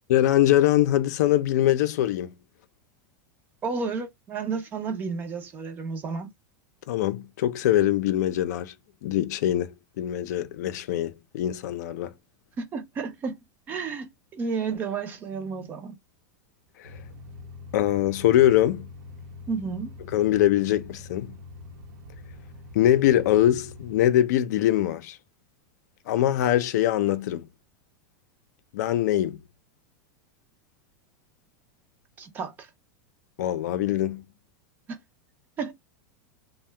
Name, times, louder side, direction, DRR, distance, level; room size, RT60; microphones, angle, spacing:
voice 1, 0.1-2.3 6.9-8.7 9.0-12.1 16.8-16.9 17.7-18.9 20.1-21.3 22.7-25.2 26.1-27.5 28.7-29.4 33.4-34.2, left 12 dB, 65° left, 0.5 m, -23 dB
voice 2, 3.6-6.3 12.6-13.4 13.7-15.9 19.5-19.9 32.2-32.7 34.9-35.0 35.6-35.7, right 5 dB, 20° right, 0.5 m, -31 dB
sound 1, 16.8-24.0, left 3 dB, 85° right, 0.8 m, -44 dB
2.7 x 2.1 x 3.3 m
supercardioid pair, 165°, 10 cm